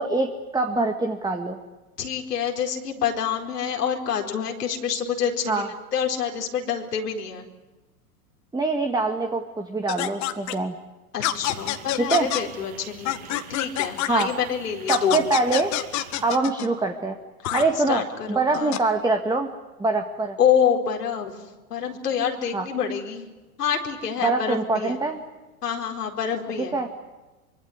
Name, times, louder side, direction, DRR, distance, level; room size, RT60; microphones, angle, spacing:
voice 1, 0.0-1.6 5.5-5.7 8.5-10.8 12.0-12.3 14.1-14.3 14.9-15.8 16.2-17.2 17.5-19.5 19.8-20.4 22.5-22.7 24.2-25.2 26.7-26.9, right 3 dB, 10° right, 4 dB, 1.9 m, -24 dB
voice 2, 2.0-7.5 11.1-15.2 17.5-18.8 20.4-21.3 21.7-23.3 23.6-25.0 25.6-26.8, left 7 dB, 85° left, 2 dB, 4.7 m, -27 dB
sound 1, 9.9-10.5 11.2-12.4 13.1-14.2 14.9-16.7 17.4-17.6 18.5-18.8, left 14 dB, 40° left, 2.0 m, -26 dB
sound 2, 11.5-16.4, right 8 dB, 60° right, 7.0 m, -46 dB
25.0 x 24.0 x 9.7 m, 1.1 s
hypercardioid pair, 110°, 46 cm